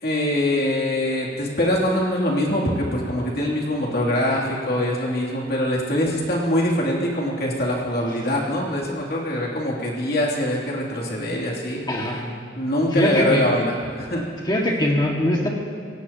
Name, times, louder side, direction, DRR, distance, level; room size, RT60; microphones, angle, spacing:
voice 1, 0.0-11.8 12.5-14.3, left 1 dB, 55° left, -4 dB, 3.0 m, -23 dB
voice 2, 11.9-12.2 12.9-13.5 14.4-15.5, left 1 dB, 25° left, -1 dB, 1.9 m, -22 dB
26.0 x 17.0 x 3.0 m, 2.1 s
head